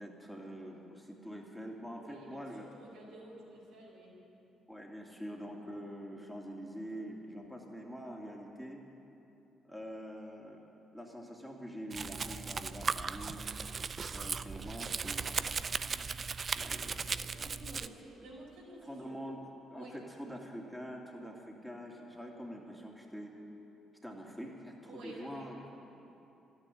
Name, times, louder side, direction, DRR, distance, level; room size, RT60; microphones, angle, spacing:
voice 1, 0.0-2.7 4.7-8.8 9.6-13.5 14.1-15.5 16.6-17.5 18.8-19.4 19.7-23.4 24.0-25.6 25.9-26.0, equal, ahead, -1 dB, 2.4 m, -45 dB
voice 2, 1.9-4.2 17.2-19.1 19.7-20.0 24.9-25.5, right 1 dB, 80° right, -4 dB, 4.4 m, -51 dB
Domestic sounds home sounds, 11.9-17.9, right 5 dB, 45° right, 0.5 m, -37 dB
13.0 x 9.8 x 9.9 m, 3.0 s
hypercardioid pair, 50°, 0 cm